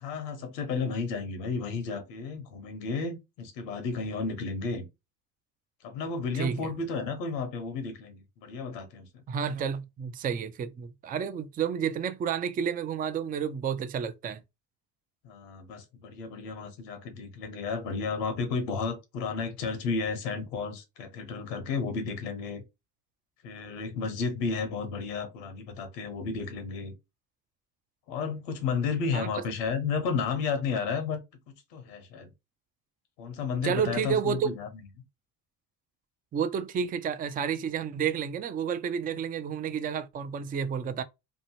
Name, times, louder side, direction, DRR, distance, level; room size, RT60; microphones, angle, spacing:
voice 1, 0.0-4.8 5.8-9.2 15.2-22.6 23.4-26.9 28.1-31.2 31.7-32.3 33.2-34.8, left 5 dB, 85° left, 1.0 m, -32 dB
voice 2, 9.3-14.4 29.1-29.3 33.6-34.5 36.3-41.0, right 7 dB, 20° right, 0.3 m, -30 dB
2.9 x 2.6 x 2.8 m
hypercardioid pair, 65°, 48 cm